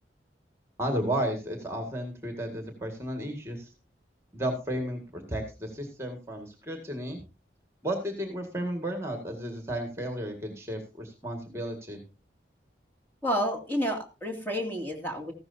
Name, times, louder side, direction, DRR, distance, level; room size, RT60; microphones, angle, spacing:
voice 1, 0.8-3.7 4.3-7.2 7.8-12.0, right 1 dB, 15° right, 4 dB, 1.9 m, -33 dB
voice 2, 13.2-15.3, equal, 10° left, 1 dB, 2.4 m, -30 dB
15.0 x 12.5 x 2.7 m, 0.29 s
head